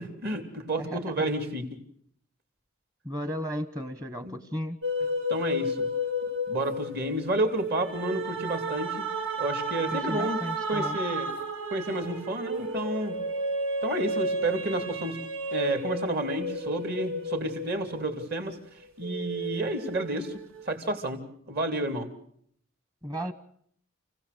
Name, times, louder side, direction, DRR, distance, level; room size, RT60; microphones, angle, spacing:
voice 1, 0.0-1.8 4.2-4.4 5.3-5.9 6.5-9.1 9.4-10.4 10.7-11.3 11.7-13.2 13.8-15.2 15.5-18.6 19.0-21.2 21.5-22.1, right 1 dB, 50° right, 5 dB, 2.9 m, -30 dB
voice 2, 0.8-1.1 3.0-4.8 9.9-11.0 23.0-23.3, equal, 15° right, 11 dB, 1.1 m, -34 dB
sound 1, 4.8-18.6 19.0-20.6, equal, 75° right, 3.4 m, -32 dB
29.0 x 16.5 x 6.8 m, 0.67 s
head